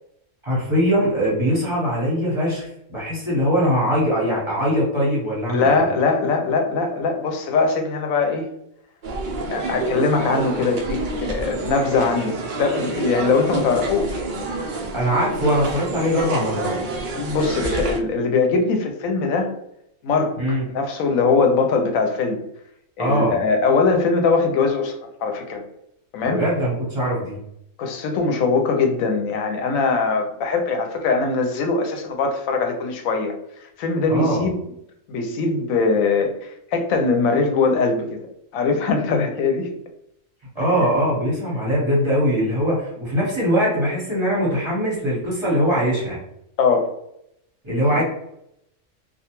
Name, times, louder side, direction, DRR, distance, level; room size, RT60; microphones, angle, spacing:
voice 1, 0.4-5.8 14.9-16.8 20.4-20.6 23.0-23.4 26.2-27.4 34.1-34.5 39.1-39.2 40.5-46.2 47.6-48.0, equal, 25° right, -6 dB, 1.0 m, -21 dB
voice 2, 5.5-8.4 9.5-14.2 17.1-19.5 20.0-20.4 20.7-22.4 23.0-24.9 25.2-25.6 26.1-26.4 27.8-33.4 33.8-34.5 35.1-38.2 38.5-39.7 40.8-40.9 46.6-46.9 47.9-48.0, left 4 dB, 90° left, 4 dB, 1.0 m, -21 dB
sound 1, 9.0-18.0, right 3 dB, 65° right, 0.4 m, -28 dB
2.4 x 2.2 x 2.9 m, 0.78 s
omnidirectional pair, 1.4 m